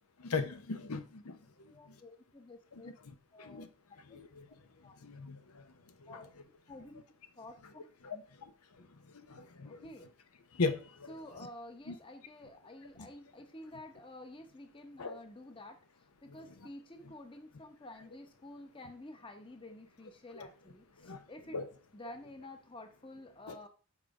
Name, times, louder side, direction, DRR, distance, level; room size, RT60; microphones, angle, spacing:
voice 1, 0.2-1.4 3.5-3.7 4.1-4.4 5.0-5.4 6.1-6.2 8.0-8.2 9.3-9.8 10.6-11.5 11.9-12.0 13.0-13.1 15.0-15.2 20.3-20.5 21.0-21.2 21.5-21.7 23.5-23.6, left 4 dB, 80° left, 9 dB, 0.8 m, -37 dB
voice 2, 1.7-2.9 3.3-3.6 4.1-4.2 4.8-4.9 6.1-6.3 6.7-7.0 7.4-8.2 9.6-10.1 11.1-15.8 16.2-21.6 21.9-23.7, left 1 dB, 20° left, 6 dB, 0.9 m, -50 dB
7.4 x 5.1 x 4.8 m, 0.38 s
head